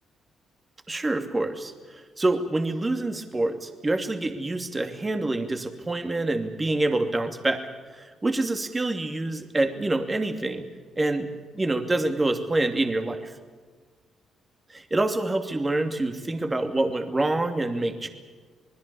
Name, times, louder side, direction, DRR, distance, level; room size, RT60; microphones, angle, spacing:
voice 1, 0.9-7.6 7.9-10.7 11.0-11.3 11.5-13.3 14.7-18.1, right 2 dB, 20° right, 6 dB, 2.7 m, -26 dB
26.5 x 20.5 x 7.1 m, 1.4 s
cardioid pair, 90°, 0 cm